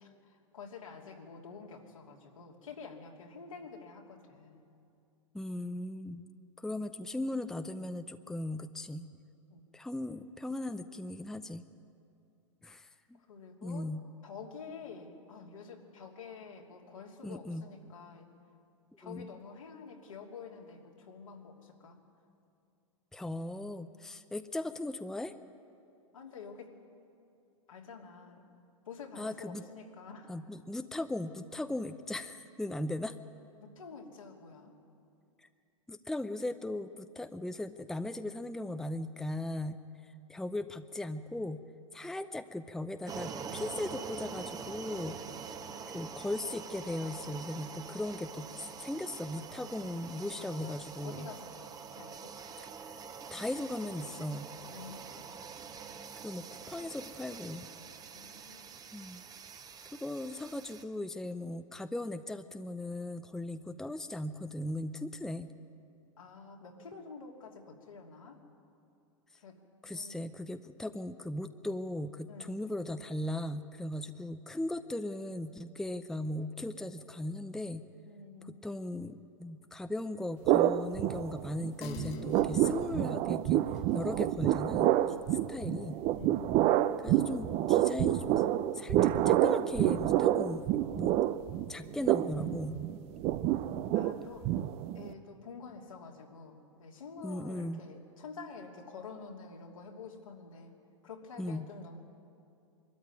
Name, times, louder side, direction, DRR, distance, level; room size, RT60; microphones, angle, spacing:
voice 1, 0.0-4.6 9.5-9.7 13.2-13.9 14.2-18.3 19.0-22.0 26.1-26.7 27.7-28.5 28.9-30.3 33.6-34.8 50.3-52.7 54.7-55.3 58.1-58.7 66.2-68.4 69.4-69.6 69.9-70.4 72.3-72.5 78.1-78.6 86.1-86.9 93.9-94.5 94.9-100.7 101.0-102.0, left 5 dB, 80° left, 0 dB, 2.9 m, -48 dB
voice 2, 5.3-6.2 6.6-9.1 9.7-11.6 12.6-13.2 13.6-14.0 17.2-17.6 19.0-19.3 23.1-25.3 29.2-29.6 30.3-33.2 35.9-39.8 40.3-41.6 41.9-45.2 45.9-51.3 53.3-54.5 56.2-57.7 58.9-59.2 59.9-65.5 69.8-77.9 78.6-83.7 83.9-84.9 85.5-86.0 87.0-88.4 88.7-90.7 91.0-91.2 91.7-92.8 97.2-97.8 101.4-101.7, left 1 dB, 5° left, 9 dB, 0.6 m, -38 dB
sound 1, 43.1-60.8, right 6 dB, 20° right, 1.2 m, -45 dB
sound 2, 80.5-81.7 82.0-95.1, right 13 dB, 35° right, 0.7 m, -28 dB
sound 3, 81.8-88.8 89.2-89.3, left 8 dB, 35° left, 1.6 m, -50 dB
22.5 x 13.5 x 9.5 m, 2.5 s
hypercardioid pair, 105°, 17 cm